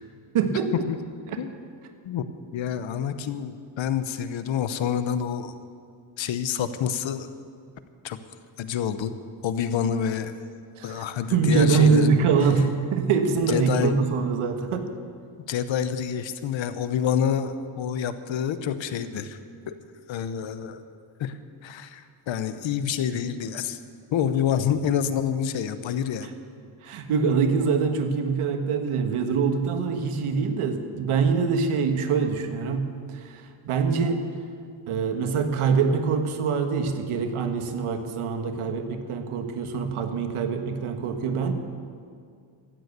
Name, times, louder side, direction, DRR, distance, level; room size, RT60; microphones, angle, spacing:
voice 1, 0.3-0.9 1.3-1.4 10.8-11.0 11.3-14.9 26.8-34.3 34.9-41.5, right 5 dB, 80° right, 6 dB, 1.5 m, -24 dB
voice 2, 2.5-5.5 6.2-7.3 8.0-8.2 8.6-9.1 9.4-10.3 10.8-12.1 13.5-14.0 15.5-19.4 19.7-19.8 20.1-20.8 21.2-21.4 21.6-23.8 24.1-26.3 38.7-38.8, left 8 dB, 65° left, 11 dB, 1.0 m, -27 dB
14.0 x 9.4 x 8.2 m, 2.2 s
cardioid pair, 125°, 50 cm